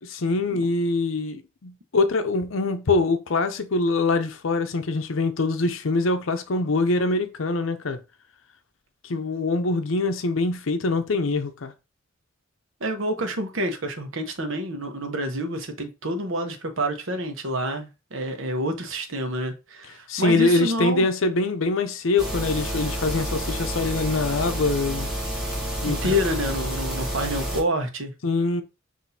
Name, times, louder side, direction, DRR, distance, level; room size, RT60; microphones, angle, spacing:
voice 1, 0.0-8.0 9.0-11.7 20.1-25.1 25.8-26.1 28.2-28.6, left 3 dB, 75° left, 0.6 m, -24 dB
voice 2, 12.8-21.1 25.9-28.1, equal, 70° right, 0.9 m, -28 dB
sound 1, 22.2-27.6, equal, 5° right, 1.3 m, -29 dB
5.8 x 2.7 x 2.7 m
head